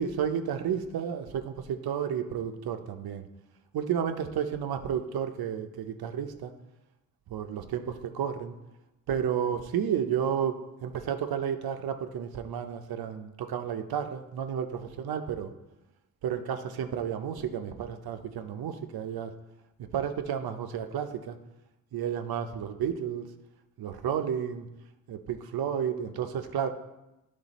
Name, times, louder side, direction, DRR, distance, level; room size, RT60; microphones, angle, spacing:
voice 1, 0.0-3.3 3.7-6.5 7.3-8.5 9.1-15.5 16.2-19.3 19.9-21.3 21.9-23.3 23.8-24.7 25.1-26.7, right 8 dB, 90° right, 8 dB, 0.6 m, -32 dB
9.9 x 3.4 x 4.0 m, 0.95 s
wide cardioid pair, 140°, 36 cm